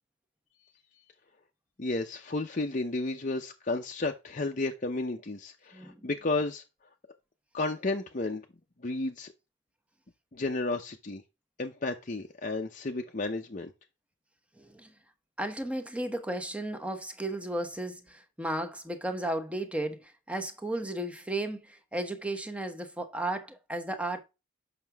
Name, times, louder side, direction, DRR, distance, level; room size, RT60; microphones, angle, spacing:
voice 1, 1.8-6.6 7.5-8.4 8.8-9.3 10.3-11.2 11.6-13.7, left 2 dB, 40° left, 0.7 m, -32 dB
voice 2, 5.7-6.1 14.6-14.9 15.4-24.2, right 1 dB, 5° right, 1.0 m, -34 dB
7.6 x 5.9 x 3.5 m
head